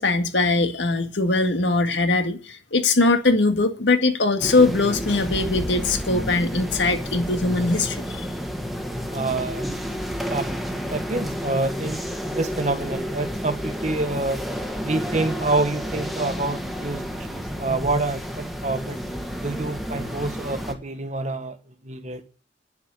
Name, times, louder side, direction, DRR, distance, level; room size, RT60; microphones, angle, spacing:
voice 1, 0.0-8.3, left 3 dB, 75° left, 1.9 m, -21 dB
sound 1, 4.4-20.7, equal, ahead, 1.5 m, -31 dB
voice 2, 9.1-9.7 10.3-10.4 10.9-12.0 12.3-14.5 14.8-19.0 19.4-21.6 21.8-22.3, right 2 dB, 40° right, 1.5 m, -27 dB
10.0 x 7.3 x 9.5 m
head